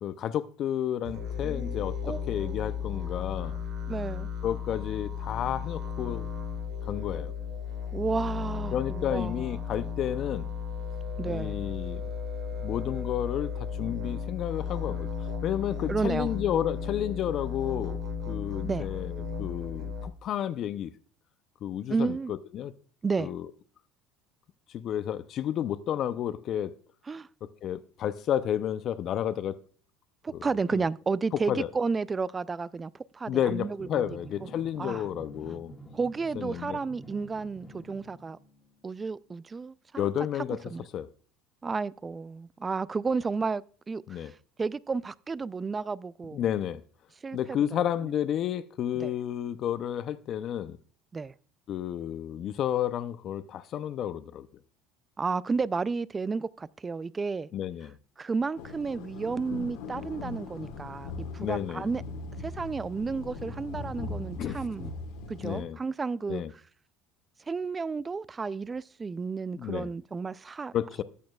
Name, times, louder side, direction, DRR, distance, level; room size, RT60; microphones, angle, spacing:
voice 1, 0.0-3.6 4.4-6.3 6.8-7.3 8.7-10.5 11.2-12.0 12.6-18.0 18.3-20.9 21.6-22.7 23.2-23.5 24.7-26.7 27.6-29.6 30.7-30.8 31.5-31.7 33.3-35.7 36.4-36.8 40.0-40.6 40.9-41.1 44.1-44.3 46.3-46.8 47.3-50.8 51.7-54.5 57.5-58.0 61.4-61.9 64.4-64.6 65.4-65.8 66.3-66.5 69.5-69.9 70.7-71.0, left 10 dB, 50° left, 0.6 m, -31 dB
sound 1, 1.0-20.1, left 7 dB, 65° right, 2.3 m, -35 dB
voice 2, 1.4-2.5 3.9-4.3 7.9-9.6 11.2-11.6 15.9-16.3 18.6-18.9 21.9-22.3 23.0-23.3 27.1-27.3 30.2-34.0 34.4-34.5 34.8-35.0 35.9-38.4 38.8-40.1 40.7-40.9 41.6-46.5 47.2-47.8 48.9-49.1 51.1-51.3 55.2-57.5 58.2-62.0 62.4-64.9 65.3-66.6 67.5-70.7, right 4 dB, 25° right, 0.4 m, -32 dB
Drum, 33.8-38.9, right 1 dB, 20° left, 1.7 m, -48 dB
sound 2, 58.6-65.6, left 3 dB, 80° left, 1.6 m, -40 dB
14.0 x 8.6 x 2.3 m
supercardioid pair, 90°, 0 cm